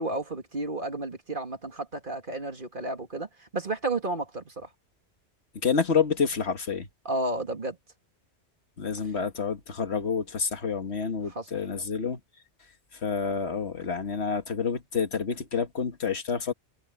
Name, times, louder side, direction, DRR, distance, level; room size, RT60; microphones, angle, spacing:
voice 1, 0.0-4.7 7.0-7.8 11.3-11.5, right 2 dB, 45° right, 2.5 m, -32 dB
voice 2, 5.6-6.9 8.8-12.2 12.9-16.5, left 5 dB, 65° left, 1.8 m, -28 dB
omnidirectional pair, 1.2 m